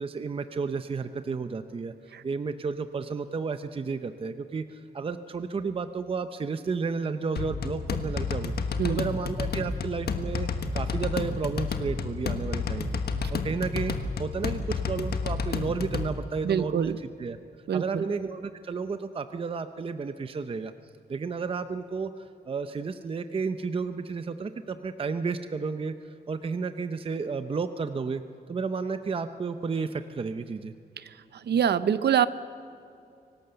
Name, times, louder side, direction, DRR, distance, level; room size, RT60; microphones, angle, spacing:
voice 1, 0.0-8.5 8.9-13.0 13.3-14.6 14.9-17.4 17.7-20.7 21.1-28.2 28.5-30.7, right 5 dB, 35° right, 9 dB, 0.6 m, -32 dB
sound 1, 7.4-16.1, left 4 dB, 75° left, 1.4 m, -30 dB
voice 2, 16.4-17.0 17.7-18.0 31.5-32.3, right 9 dB, 85° right, 14 dB, 0.7 m, -24 dB
24.5 x 18.5 x 6.9 m, 2.5 s
wide cardioid pair, 175°, 17 cm